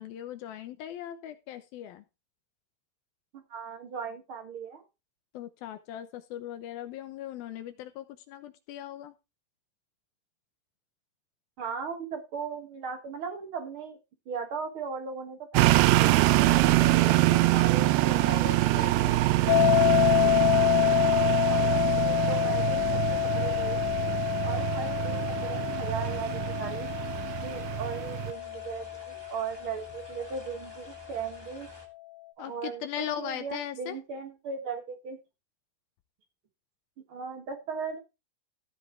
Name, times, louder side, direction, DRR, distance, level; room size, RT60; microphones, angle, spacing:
voice 1, 0.0-2.0 5.3-9.1 16.2-17.4 17.8-19.2 32.4-34.0, left 11 dB, 75° left, 9 dB, 2.5 m, -39 dB
voice 2, 3.3-4.8 11.6-14.0 14.2-16.1 16.9-18.5 18.8-18.9 20.2-20.3 21.4-22.9 23.3-23.8 24.4-26.9 27.4-31.7 32.4-35.2 37.1-38.0, right 5 dB, 65° right, 5 dB, 1.3 m, -37 dB
sound 1, 15.6-28.3, right 18 dB, 85° right, 2.7 m, -25 dB
sound 2, 18.7-31.9, right 1 dB, 10° right, 1.3 m, -51 dB
sound 3, 19.5-30.4, left 19 dB, 55° left, 2.2 m, -27 dB
15.0 x 5.4 x 4.5 m, 0.27 s
omnidirectional pair, 4.8 m